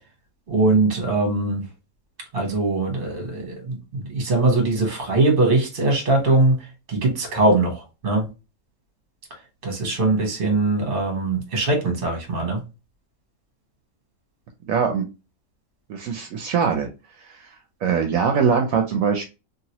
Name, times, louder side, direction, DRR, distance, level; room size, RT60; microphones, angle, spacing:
voice 1, 0.5-1.6 2.3-6.6 6.9-8.3 9.6-12.6, right 2 dB, 40° right, 1.2 m, -21 dB
voice 2, 14.7-15.0 15.9-16.9 17.2-17.5 17.8-19.3, right 6 dB, 75° right, 0.9 m, -22 dB
2.9 x 2.8 x 2.8 m
omnidirectional pair, 1.5 m